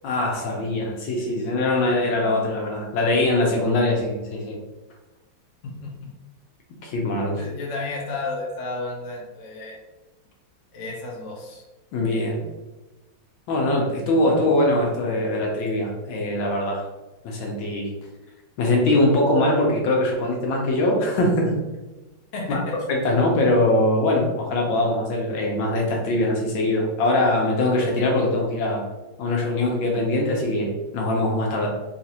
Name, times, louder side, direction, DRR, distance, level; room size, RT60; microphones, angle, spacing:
voice 1, 0.0-4.6 6.8-7.4 11.9-12.5 13.5-16.8 17.2-17.9 18.6-21.5 22.5-22.6 22.9-28.8 29.2-31.7, left 1 dB, 75° left, 0 dB, 1.4 m, -22 dB
voice 2, 5.6-6.1 7.4-9.8 10.7-11.6 22.3-22.8, left 2 dB, 55° left, -3 dB, 0.8 m, -32 dB
4.0 x 2.5 x 2.8 m, 1.1 s
omnidirectional pair, 2.3 m